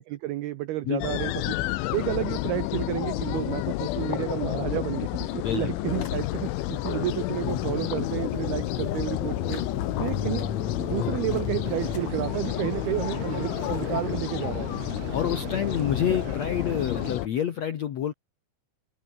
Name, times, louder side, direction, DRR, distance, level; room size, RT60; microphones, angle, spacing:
voice 1, 0.0-1.6 1.9-9.6 10.0-10.5 10.8-14.7, right 15 dB, 75° right, 2.5 m, -31 dB
sound 1, 1.0-17.3, left 17 dB, 90° left, 3.5 m, -30 dB
voice 2, 5.4-6.2 6.9-7.0 15.1-18.1, left 9 dB, 70° left, 1.6 m, -28 dB
sound 2, 5.9-12.0, left 8 dB, 45° left, 2.6 m, -34 dB
Engine, 11.6-17.1, right 14 dB, 90° right, 1.8 m, -39 dB
omnidirectional pair, 5.5 m